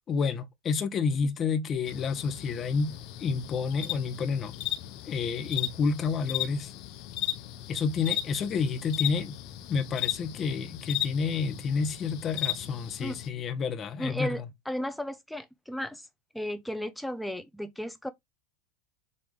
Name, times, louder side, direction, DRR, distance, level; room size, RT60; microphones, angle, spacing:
voice 1, 0.1-2.9 3.2-4.5 5.0-6.7 7.7-9.4 9.7-14.5, left 5 dB, 35° left, 1.6 m, -29 dB
sound 1, 1.9-13.3, left 13 dB, 55° left, 1.1 m, -36 dB
voice 2, 14.0-16.1 16.3-18.1, equal, 5° left, 1.2 m, -34 dB
7.7 x 3.3 x 4.0 m
hypercardioid pair, 95°, 0 cm